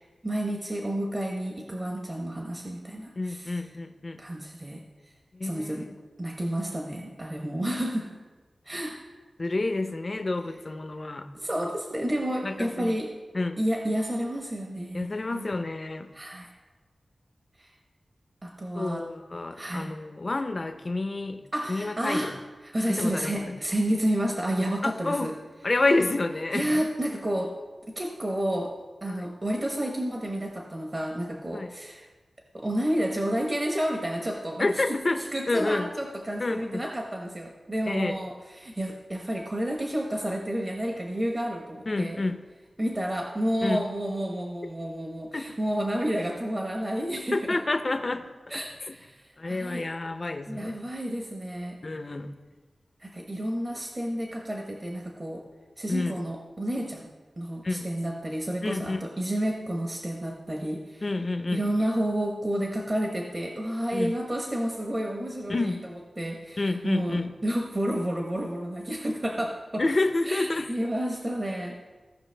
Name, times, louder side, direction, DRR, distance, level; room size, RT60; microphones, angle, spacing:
voice 1, 0.2-3.7 4.2-5.1 5.4-5.9 6.2-8.2 8.6-9.0 11.3-13.2 13.6-15.5 16.1-16.5 17.6-17.7 18.4-19.1 19.5-19.9 21.5-22.4 22.6-25.4 26.5-27.5 27.9-28.7 29.0-32.1 32.5-42.2 42.8-47.6 48.5-49.9 50.5-51.8 53.0-55.5 55.8-61.0 61.5-65.7 66.2-69.8 70.2-71.8, equal, 30° right, 0 dB, 1.0 m, -30 dB
voice 2, 3.2-4.2 5.3-6.0 9.4-11.3 12.4-12.9 13.3-13.6 14.9-16.1 18.8-21.4 21.7-22.3 22.9-23.6 24.8-25.3 25.6-26.8 29.1-29.3 31.5-31.7 34.6-35.2 35.5-35.9 36.4-36.8 37.9-38.2 41.9-42.4 43.6-43.8 45.3-45.5 47.3-48.6 48.9-49.0 49.4-50.8 51.8-52.3 55.9-56.2 57.6-57.9 58.6-59.0 61.0-61.7 63.9-64.2 65.5-65.8 66.6-67.3 69.8-70.7, left 2 dB, 40° left, 8 dB, 0.7 m, -29 dB
16.5 x 5.7 x 3.4 m, 1.3 s
wide cardioid pair, 100°, 0 cm